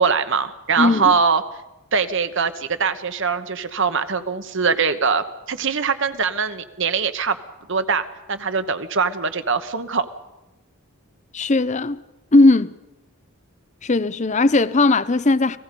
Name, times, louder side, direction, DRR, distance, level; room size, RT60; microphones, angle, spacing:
voice 1, 0.0-1.4 1.9-7.4 7.7-10.0, right 5 dB, 60° right, 1.2 m, -22 dB
voice 2, 0.8-1.2 11.3-12.0 12.3-12.8 13.8-15.6, left 2 dB, 35° left, 0.6 m, -17 dB
30.0 x 19.0 x 5.4 m
head